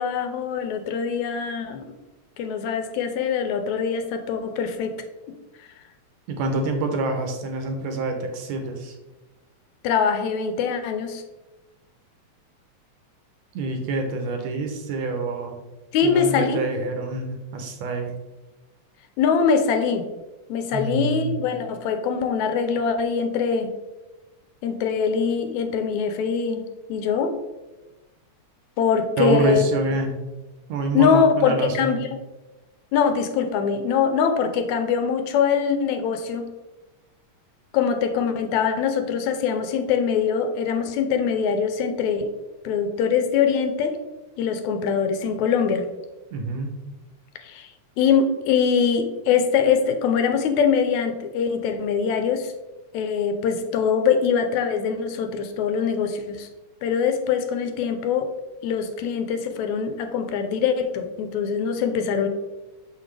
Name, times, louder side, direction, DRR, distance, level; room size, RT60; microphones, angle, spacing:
voice 1, 0.0-1.8 2.4-5.0 5.3-5.7 9.8-11.2 15.9-16.6 19.2-20.1 20.5-23.7 24.6-27.4 28.8-29.6 30.9-32.1 32.9-36.5 37.7-42.3 42.6-44.0 44.4-45.9 47.4-47.7 48.0-52.5 52.9-56.5 56.8-58.3 58.6-62.3, left 6 dB, 80° left, 7 dB, 1.9 m, -23 dB
voice 2, 6.3-8.9 13.5-15.6 16.0-18.2 20.7-21.3 29.2-30.2 30.7-32.0 46.3-46.7, right 3 dB, 70° right, 4 dB, 1.9 m, -26 dB
6.5 x 5.8 x 3.2 m, 1.1 s
omnidirectional pair, 3.4 m